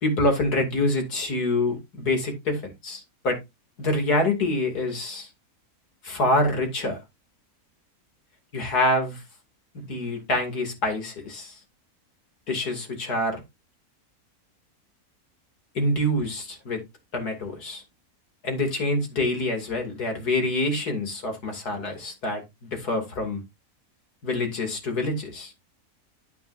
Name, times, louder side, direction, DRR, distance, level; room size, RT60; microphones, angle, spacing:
voice 1, 0.0-3.4 3.8-5.3 6.0-7.0 8.5-9.2 9.7-11.6 12.5-13.4 15.7-16.8 17.1-17.8 18.4-23.4 24.2-25.5, left 1 dB, 90° left, 3.2 m, -26 dB
9.4 x 9.2 x 2.6 m
omnidirectional pair, 1.6 m